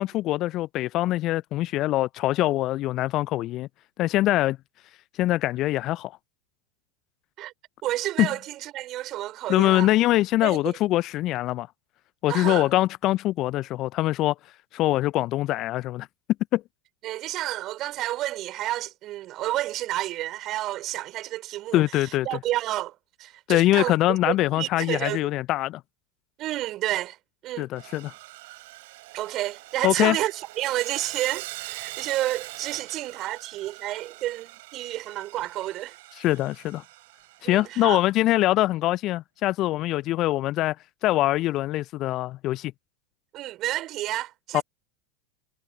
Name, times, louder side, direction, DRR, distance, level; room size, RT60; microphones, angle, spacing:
voice 1, 0.0-3.7 4.0-4.6 5.2-6.1 8.2-8.3 9.5-11.7 12.2-14.3 14.7-16.1 16.5-16.6 21.7-22.3 23.5-25.8 27.6-28.1 29.8-30.2 36.2-36.8 37.4-40.8 41.0-42.7 44.5-44.6, left 16 dB, 40° left, 0.7 m, -23 dB
voice 2, 7.8-9.9 10.4-10.7 12.3-12.7 17.0-24.0 24.2-25.3 26.4-27.2 27.4-27.7 29.1-35.9 37.4-38.0 43.3-44.6, right 15 dB, 40° right, 4.2 m, -30 dB
Sawing, 27.8-38.0, right 20 dB, 60° right, 4.9 m, -43 dB
figure-of-eight pair, 85°, 0 cm